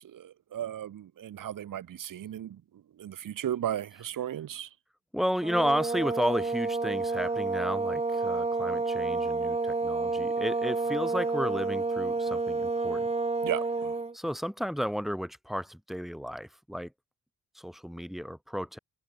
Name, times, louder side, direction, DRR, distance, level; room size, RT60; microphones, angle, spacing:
voice 1, 0.0-2.6 3.0-4.7 13.4-13.9, right 10 dB, 60° right, 3.6 m, -35 dB
voice 2, 5.1-13.0 14.1-16.9 17.5-18.8, equal, ahead, 2.5 m, -33 dB
sound 1, 5.4-14.1, right 3 dB, 15° right, 2.2 m, -29 dB
cardioid pair, 145°, 36 cm